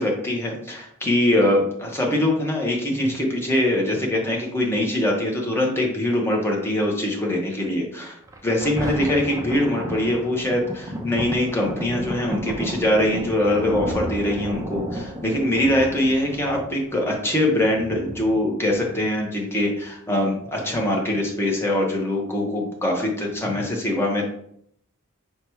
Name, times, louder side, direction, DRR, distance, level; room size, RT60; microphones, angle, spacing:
voice 1, 0.0-8.2 8.4-24.2, left 1 dB, 10° left, -1 dB, 0.9 m, -23 dB
Thunder, 8.3-19.3 19.9-20.0, right 1 dB, 15° right, 0.4 m, -33 dB
4.8 x 2.3 x 4.5 m, 0.69 s
head